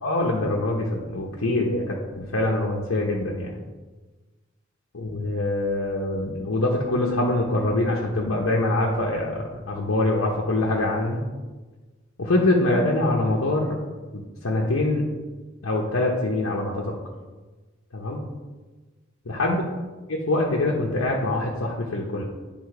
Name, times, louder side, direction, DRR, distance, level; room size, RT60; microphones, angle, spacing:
voice 1, 0.0-3.6 4.9-11.2 12.2-13.8 14.1-15.0 15.6-16.8 17.9-18.2 19.3-19.6 20.1-22.2, left 2 dB, 85° left, -2 dB, 0.9 m, -24 dB
8.4 x 3.6 x 4.8 m, 1.3 s
head